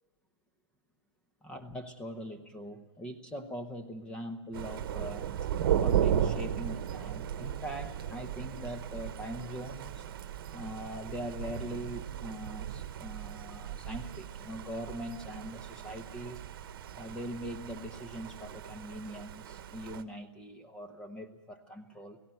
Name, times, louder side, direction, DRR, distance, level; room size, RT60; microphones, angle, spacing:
voice 1, 1.4-5.3 5.8-10.1 10.4-16.4 16.9-22.2, equal, 5° left, 8 dB, 0.9 m, -42 dB
Thunder, 4.5-20.0, right 9 dB, 50° right, 1.2 m, -35 dB
17.0 x 17.0 x 9.2 m, 1.1 s
hypercardioid pair, 165°, 15 cm